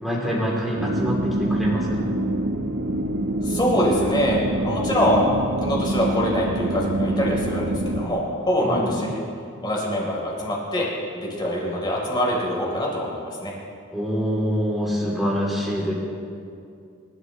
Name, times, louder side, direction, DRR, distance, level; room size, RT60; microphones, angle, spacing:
voice 1, 0.0-2.0 4.5-4.7 8.5-8.9 13.9-15.9, equal, ahead, -5 dB, 3.0 m, -25 dB
sound 1, 0.8-8.1, right 1 dB, 80° right, 1.2 m, -25 dB
voice 2, 3.4-5.3 5.6-9.2 9.6-10.9 11.1-13.5, equal, 20° left, -3 dB, 3.8 m, -24 dB
28.0 x 13.0 x 3.2 m, 2.4 s
head